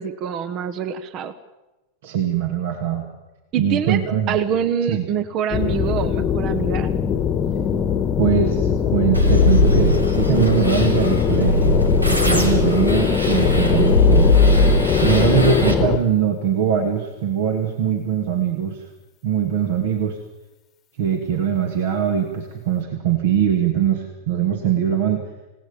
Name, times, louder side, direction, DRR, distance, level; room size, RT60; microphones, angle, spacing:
voice 1, 0.0-1.3 3.5-4.0 4.3-6.9, right 8 dB, 35° right, 11 dB, 1.4 m, -25 dB
voice 2, 2.0-3.1 3.6-4.3 4.9-5.0 8.2-11.8 12.1-14.3 15.0-18.9 19.2-20.2 21.0-25.3, right 9 dB, 55° right, 4 dB, 2.7 m, -21 dB
sound 1, 5.5-16.0, left 8 dB, 30° left, 1.4 m, -21 dB
sound 2, 9.1-15.7, left 2 dB, 85° right, 3.3 m, -19 dB
28.0 x 18.5 x 7.3 m, 1.1 s
figure-of-eight pair, 90°, 0 cm